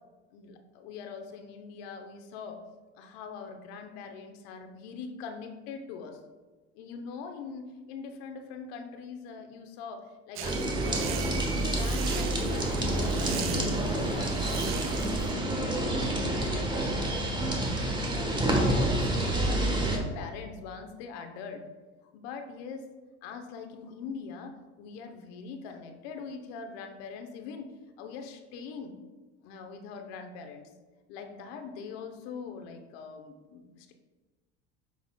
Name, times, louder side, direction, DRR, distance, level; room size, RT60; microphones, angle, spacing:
voice 1, 0.3-2.6 3.0-6.2 6.8-15.2 15.5-15.8 16.2-17.2 17.8-21.6 22.1-22.9 23.2-28.9 29.4-30.7 31.1-33.9, left 5 dB, 75° left, 5 dB, 0.9 m, -42 dB
sound 1, 10.4-20.0, right 1 dB, 15° right, 1.2 m, -28 dB
sound 2, 10.4-15.3, right 11 dB, 40° right, 0.5 m, -40 dB
7.3 x 5.7 x 2.3 m, 1.2 s
supercardioid pair, 95°, 32 cm